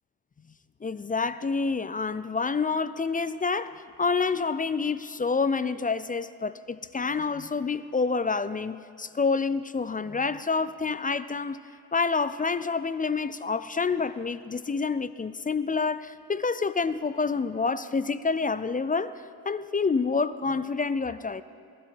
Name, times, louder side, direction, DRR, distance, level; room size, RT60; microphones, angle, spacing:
voice 1, 0.8-11.6 11.9-19.1 19.5-21.4, left 4 dB, 20° left, 14 dB, 0.4 m, -28 dB
20.0 x 12.5 x 4.5 m, 2.4 s
supercardioid pair, 65°, 44 cm